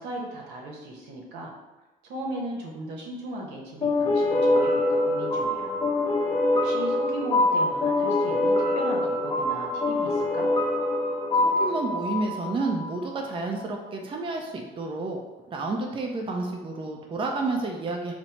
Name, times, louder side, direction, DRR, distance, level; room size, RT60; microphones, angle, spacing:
voice 1, 0.0-1.5 2.0-5.9 6.5-10.5, right 1 dB, 85° right, 0 dB, 0.9 m, -37 dB
sound 1, 3.8-13.1, left 2 dB, 30° left, 0.6 m, -24 dB
voice 2, 11.4-15.2 15.5-18.1, right 3 dB, 30° right, 1 dB, 0.5 m, -30 dB
4.2 x 2.0 x 4.4 m, 1.1 s
cardioid pair, 110°, 17 cm